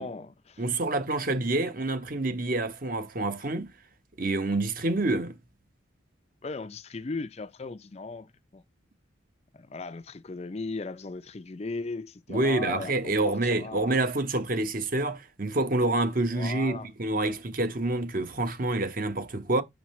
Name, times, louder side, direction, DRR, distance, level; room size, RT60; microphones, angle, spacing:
voice 1, 0.0-0.7 6.4-8.6 9.5-14.0 16.3-16.9, left 3 dB, 30° left, 0.5 m, -37 dB
voice 2, 0.6-3.7 4.2-5.3 12.3-19.6, right 2 dB, 45° right, 0.9 m, -27 dB
7.2 x 6.4 x 3.1 m
head